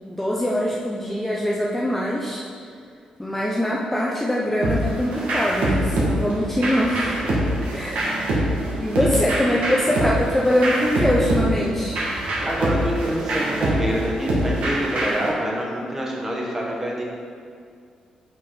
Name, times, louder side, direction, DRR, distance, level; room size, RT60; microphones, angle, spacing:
voice 1, 0.1-2.4 3.2-7.3 7.7-8.3 8.7-12.0, equal, 10° left, -4 dB, 0.6 m, -23 dB
sound 1, 4.6-15.3, right 1 dB, 80° right, 1.8 m, -24 dB
voice 2, 12.4-17.0, equal, 15° right, -3 dB, 1.4 m, -26 dB
5.9 x 5.7 x 4.8 m, 2.2 s
cardioid pair, 105°, 2 cm